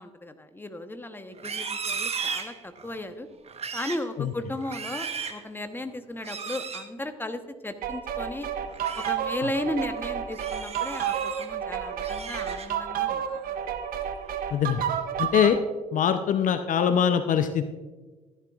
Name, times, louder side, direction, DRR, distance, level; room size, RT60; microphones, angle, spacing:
voice 1, 0.0-3.3 3.7-8.5 8.9-13.4, left 1 dB, 10° left, 9 dB, 1.0 m, -35 dB
Livestock farm animals working animals, 1.3-3.0 3.4-4.1 4.5-5.4 6.2-6.9 8.6-9.1 9.6-9.8 10.3-11.5 11.9-12.9 13.3-13.6 14.0-14.5, right 6 dB, 40° right, 1.2 m, -36 dB
sound 1, 7.8-15.6, right 9 dB, 60° right, 1.0 m, -31 dB
voice 2, 14.5-14.8 15.2-15.6 15.9-17.6, left 8 dB, 50° left, 10 dB, 0.6 m, -23 dB
14.5 x 10.5 x 2.5 m, 1.3 s
hypercardioid pair, 45°, 17 cm